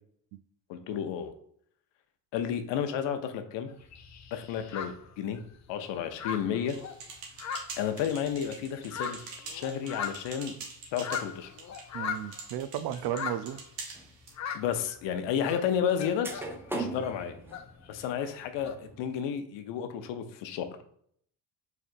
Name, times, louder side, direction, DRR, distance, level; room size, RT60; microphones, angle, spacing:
voice 1, 0.7-1.3 2.3-3.7 4.3-5.4 5.7-6.8 7.8-9.2 9.5-10.6 10.9-11.5 14.5-16.3 16.7-17.3 17.9-20.7, left 8 dB, 75° left, 8 dB, 0.7 m, -32 dB
sound 1, 3.7-5.7 6.0-8.3 8.6-12.5 12.9-13.7 14.3-15.0 15.3-16.7 17.0-18.7, left 7 dB, 40° left, 0.5 m, -40 dB
sound 2, 6.7-14.4, right 4 dB, 90° right, 1.1 m, -45 dB
voice 2, 11.9-13.6 16.7-17.0, right 11 dB, 60° right, 13 dB, 0.5 m, -34 dB
sound 3, 13.9-14.1 15.9-16.0 16.2-19.0, right 2 dB, 5° right, 0.6 m, -38 dB
4.8 x 3.4 x 2.5 m, 0.62 s
supercardioid pair, 70°, 44 cm